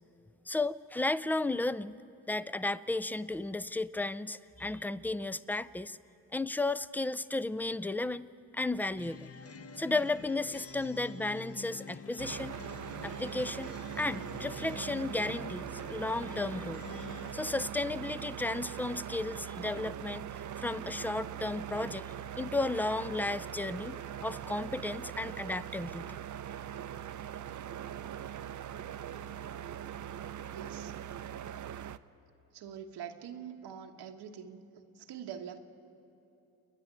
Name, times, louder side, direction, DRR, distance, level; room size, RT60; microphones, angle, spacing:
voice 1, 0.5-2.0 2.3-6.0 6.3-8.3 8.5-9.3 9.8-12.6 13.0-16.8 17.3-26.2, left 2 dB, 5° left, 17 dB, 0.4 m, -34 dB
sound 1, 9.0-17.3, left 5 dB, 35° left, 0.9 m, -47 dB
sound 2, 12.2-32.0, right 10 dB, 50° right, 0.6 m, -41 dB
voice 2, 30.5-30.9 32.5-34.6 34.9-35.6, right 8 dB, 85° right, 5 dB, 1.3 m, -44 dB
29.0 x 10.5 x 9.5 m, 2.9 s
cardioid pair, 70°, 39 cm